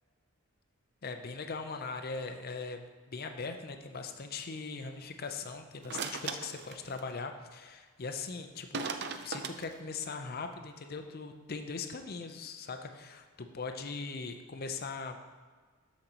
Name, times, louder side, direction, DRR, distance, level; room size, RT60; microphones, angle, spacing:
voice 1, 1.0-8.8 9.2-15.2, left 4 dB, 45° left, 6 dB, 0.6 m, -40 dB
sound 1, 5.8-7.0 8.7-9.8, right 5 dB, 50° right, 0.5 m, -37 dB
13.0 x 5.2 x 2.9 m, 1.5 s
head